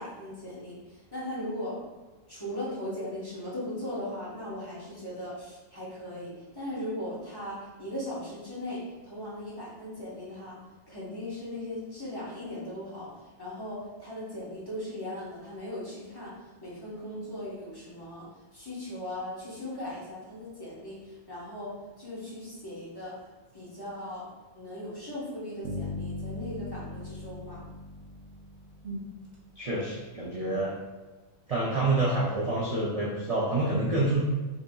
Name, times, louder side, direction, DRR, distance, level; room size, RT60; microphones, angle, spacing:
voice 1, 0.0-1.8 2.3-10.6 10.9-13.1 13.4-16.3 16.6-21.7 22.0-23.2 23.5-24.2 24.5-27.6, left 1 dB, 20° left, -9 dB, 1.0 m, -38 dB
sound 1, 25.6-29.6, left 2 dB, 75° right, 0.9 m, -39 dB
voice 2, 29.6-30.7 31.5-34.2, right 2 dB, 50° right, -5 dB, 0.4 m, -27 dB
5.2 x 2.8 x 2.3 m, 1.2 s
omnidirectional pair, 1.3 m